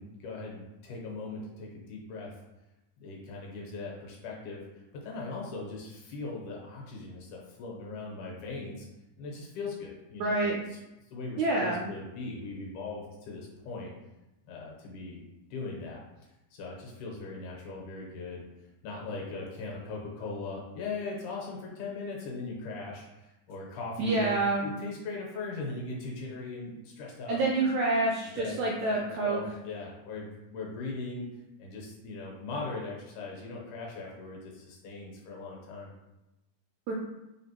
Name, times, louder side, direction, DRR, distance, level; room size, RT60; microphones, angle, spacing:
voice 1, 0.0-2.3 3.0-8.9 9.2-10.5 11.1-13.9 14.5-15.2 15.5-16.0 16.5-18.5 18.8-24.3 24.6-27.4 28.3-31.2 31.6-35.9, left 3 dB, 80° left, -2 dB, 2.4 m, -39 dB
voice 2, 10.2-10.6 11.4-11.8 24.0-24.6 27.3-29.4 36.9-37.0, right 2 dB, 85° right, -2 dB, 1.7 m, -27 dB
4.2 x 3.9 x 2.9 m, 0.98 s
omnidirectional pair, 3.8 m